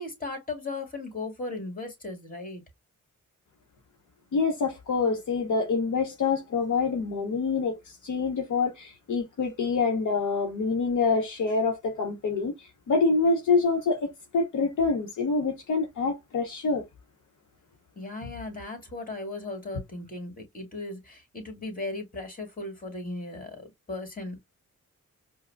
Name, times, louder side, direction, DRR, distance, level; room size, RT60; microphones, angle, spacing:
voice 1, 0.0-2.6 18.0-24.4, left 2 dB, 25° left, 2.0 m, -37 dB
voice 2, 4.3-16.8, left 4 dB, 70° left, 0.9 m, -26 dB
4.8 x 2.2 x 2.2 m
cardioid pair, 55°, 32 cm